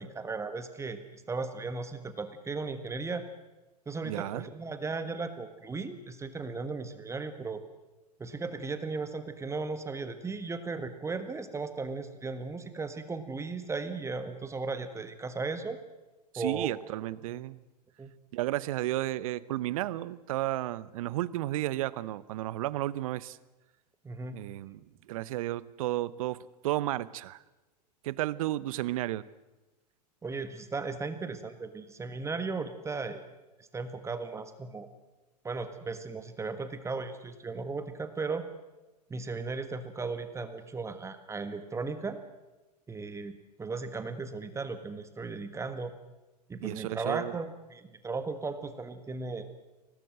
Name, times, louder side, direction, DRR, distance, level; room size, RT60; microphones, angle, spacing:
voice 1, 0.0-3.2 3.8-7.6 8.2-15.8 16.4-16.7 17.3-17.4 18.0-18.1 24.0-24.4 30.2-33.2 33.7-34.9 35.4-38.4 39.1-42.2 42.9-43.3 43.6-45.9 46.5-49.4, right 4 dB, 15° right, 10 dB, 1.6 m, -36 dB
voice 2, 4.0-4.5 16.3-17.6 18.3-23.4 24.3-27.4 28.0-29.2 46.6-47.4, right 15 dB, 55° right, 20 dB, 0.9 m, -33 dB
24.0 x 18.5 x 7.7 m, 1.1 s
figure-of-eight pair, 95°, 21 cm